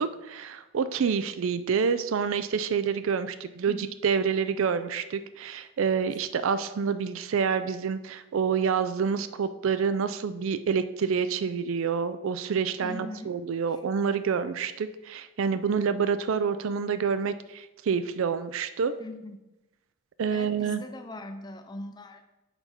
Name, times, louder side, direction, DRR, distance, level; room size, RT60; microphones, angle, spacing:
voice 1, 0.0-18.9 20.2-20.8, right 6 dB, 60° right, 12 dB, 0.4 m, -28 dB
voice 2, 12.8-13.4 19.0-19.4 20.3-22.2, left 1 dB, 20° left, 7 dB, 0.5 m, -40 dB
6.8 x 5.5 x 4.3 m, 0.99 s
head